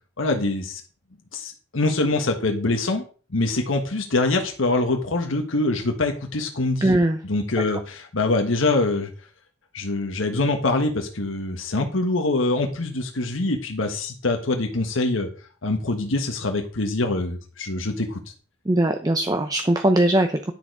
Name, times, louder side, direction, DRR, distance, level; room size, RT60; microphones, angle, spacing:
voice 1, 0.2-0.8 1.3-3.0 3.3-6.9 7.2-9.1 9.7-15.3 15.6-18.2, left 2 dB, 75° left, 4 dB, 1.3 m, -24 dB
voice 2, 6.8-7.2 7.7-7.8 18.7-20.5, right 1 dB, 20° right, 6 dB, 0.6 m, -20 dB
10.0 x 6.6 x 4.7 m, 0.38 s
head